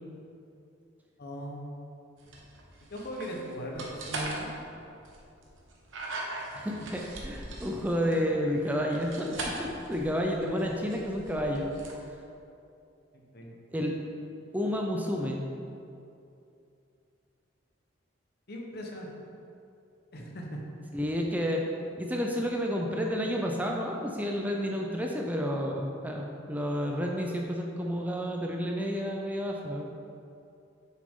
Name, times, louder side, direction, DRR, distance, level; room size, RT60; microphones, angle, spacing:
voice 1, 1.2-1.8 2.9-4.5 13.1-13.6 18.5-19.1 20.1-20.6, equal, 55° left, 0 dB, 1.1 m, -39 dB
sound 1, 2.2-11.9, right 2 dB, 80° right, 1.2 m, -41 dB
voice 2, 6.5-11.7 13.7-14.0 14.5-15.4 20.9-21.6 22.0-29.9, equal, 10° right, 0 dB, 0.5 m, -30 dB
7.8 x 6.3 x 3.7 m, 2.6 s
head